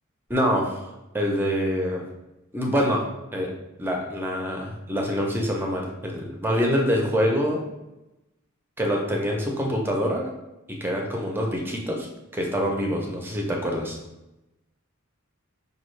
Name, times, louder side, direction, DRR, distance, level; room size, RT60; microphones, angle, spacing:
voice 1, 0.3-0.8 1.1-2.0 2.5-3.0 3.3-3.5 3.8-7.6 8.8-10.3 10.7-12.1 12.3-14.0, equal, 10° right, 0 dB, 0.6 m, -25 dB
5.3 x 2.3 x 3.1 m, 0.97 s
head